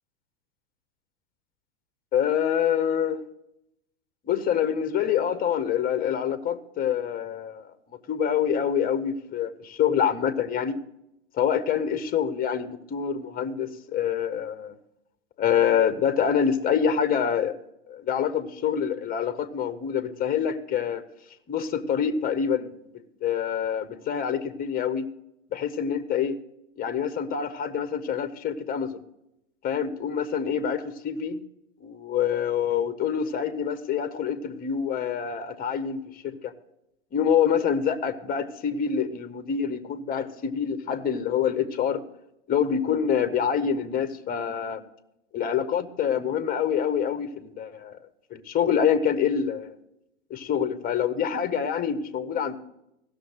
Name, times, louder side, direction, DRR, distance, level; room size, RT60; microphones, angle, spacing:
voice 1, 2.1-3.2 4.3-7.7 8.1-10.8 11.4-14.7 15.4-17.6 17.9-21.0 21.5-22.7 23.2-25.0 25.5-26.3 26.8-29.0 29.6-31.4 31.8-36.5 37.1-42.0 42.5-44.8 45.3-48.0 48.3-49.7 50.3-52.6, left 8 dB, 25° left, 13 dB, 1.1 m, -26 dB
16.0 x 6.6 x 6.4 m, 0.83 s
hypercardioid pair, 105°, 38 cm